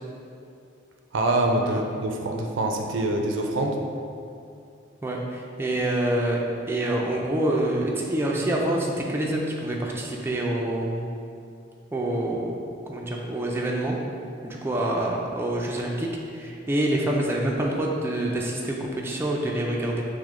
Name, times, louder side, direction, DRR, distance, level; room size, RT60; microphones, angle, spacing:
voice 1, 1.1-3.8, right 2 dB, 80° right, 3 dB, 0.4 m, -25 dB
voice 2, 5.0-6.4 6.7-11.0 11.9-12.6 12.9-14.0 14.4-20.1, right 1 dB, 10° right, -2 dB, 0.4 m, -26 dB
6.1 x 2.1 x 3.6 m, 2.5 s
head